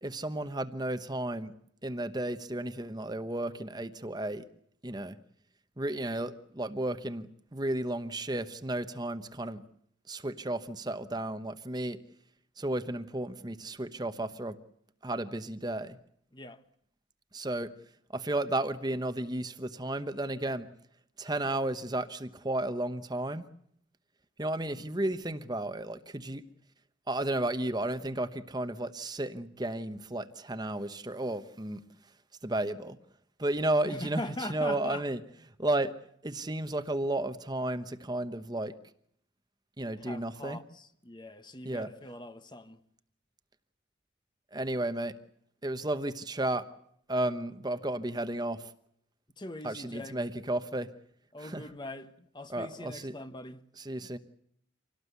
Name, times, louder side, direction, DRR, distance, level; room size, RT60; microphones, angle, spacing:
voice 1, 0.0-1.5 1.8-4.5 4.8-5.2 5.8-9.6 10.1-12.0 12.6-14.6 15.0-16.0 17.3-17.7 18.1-20.7 21.2-23.5 24.4-26.5 27.1-31.8 32.4-33.0 33.4-34.2 34.5-35.2 35.6-35.9 36.2-38.8 39.8-40.6 41.6-41.9 44.5-45.2 45.6-46.7 47.1-48.7 49.6-50.9 51.4-51.6 52.5-53.1 53.8-54.2, right 1 dB, 20° right, 1.0 m, -33 dB
voice 2, 16.3-16.6 33.8-35.0 40.0-42.8 49.4-50.2 51.3-53.6, left 2 dB, 20° left, 1.1 m, -42 dB
26.5 x 18.0 x 8.2 m
head